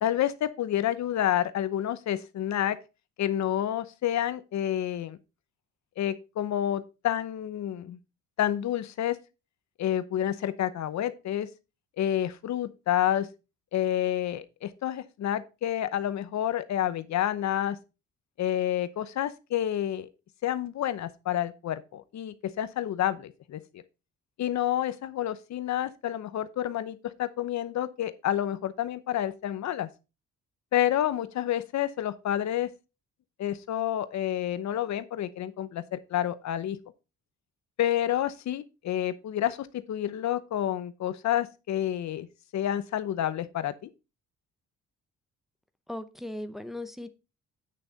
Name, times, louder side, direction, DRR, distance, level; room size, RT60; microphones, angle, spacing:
voice 1, 0.0-2.8 3.2-5.2 6.0-8.0 8.4-9.2 9.8-11.5 12.0-13.3 13.7-17.8 18.4-20.1 20.4-23.6 24.4-29.9 30.7-32.7 33.4-36.8 37.8-42.3 42.5-43.9, left 11 dB, 65° left, 0.8 m, -29 dB
voice 2, 45.9-47.1, left 1 dB, ahead, 0.8 m, -37 dB
8.7 x 6.5 x 4.0 m
cardioid pair, 90°, 30 cm